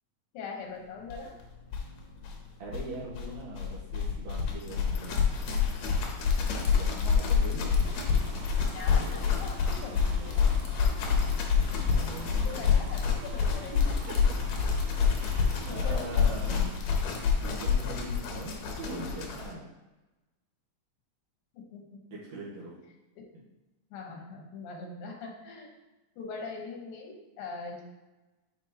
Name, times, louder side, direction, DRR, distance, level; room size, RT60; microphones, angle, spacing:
voice 1, 0.3-1.3 8.7-10.4 12.3-13.8 14.2-14.3 15.6-16.2 21.5-22.0 23.2-23.3 23.9-25.7 26.2-27.8, left 4 dB, 90° left, 0 dB, 2.9 m, -42 dB
sound 1, 1.1-1.2 1.4-1.5 1.7-19.5, left 6 dB, 70° left, 1.8 m, -27 dB
voice 2, 2.6-5.2 6.6-7.8 11.7-12.9 13.7-13.8 14.1-14.2 15.1-16.7 17.1-19.7 22.1-22.8, right 2 dB, 60° right, -6 dB, 2.3 m, -41 dB
sound 2, 7.8-16.8, right 6 dB, 90° right, 2.5 m, -46 dB
9.6 x 4.6 x 2.8 m, 1.1 s
omnidirectional pair, 4.0 m